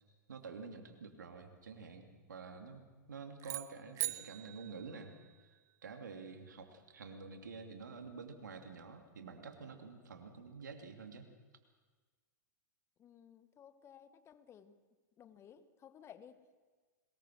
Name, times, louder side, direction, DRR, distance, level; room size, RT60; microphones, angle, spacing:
voice 1, 0.3-5.1 5.8-11.3, right 4 dB, 75° right, 4 dB, 2.7 m, -49 dB
sound 1, 3.4-5.7, right 16 dB, 35° right, 0.7 m, -42 dB
voice 2, 13.0-14.8 15.2-16.5, left 8 dB, 25° left, 11 dB, 1.3 m, -57 dB
22.0 x 20.5 x 6.2 m, 1.4 s
figure-of-eight pair, 100°, 10 cm